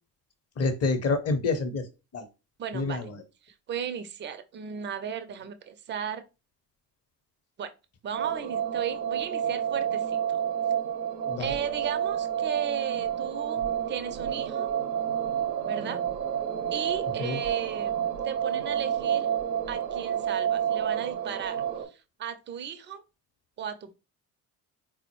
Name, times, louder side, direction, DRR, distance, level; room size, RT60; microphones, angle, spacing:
voice 1, 0.6-1.9 2.1-2.3 2.7-3.2 11.3-11.5 17.2-17.4, left 3 dB, 30° left, 0.8 m, -28 dB
voice 2, 2.6-3.1 3.4-6.2 7.6-7.7 8.0-10.4 11.4-13.6 13.9-14.7 15.6-16.0 16.7-17.9 18.2-19.3 19.7-23.0 23.6-23.9, right 8 dB, 25° right, 0.4 m, -35 dB
sound 1, 8.1-21.9, right 9 dB, 85° right, 0.6 m, -29 dB
3.8 x 2.0 x 2.9 m
hypercardioid pair, 55°, 48 cm